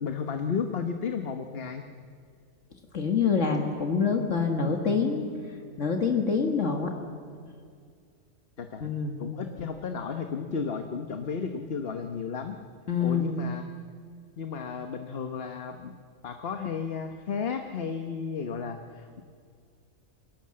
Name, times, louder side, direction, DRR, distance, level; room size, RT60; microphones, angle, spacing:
voice 1, 0.0-1.8 8.6-8.9 9.2-12.6 13.0-13.7 14.4-15.9 16.2-19.2, left 6 dB, 50° left, 6 dB, 1.3 m, -33 dB
voice 2, 2.9-5.3 5.8-6.9 8.8-9.2 12.9-13.3, left 5 dB, 65° left, 3 dB, 2.0 m, -26 dB
28.0 x 21.5 x 7.6 m, 2.2 s
omnidirectional pair, 1.4 m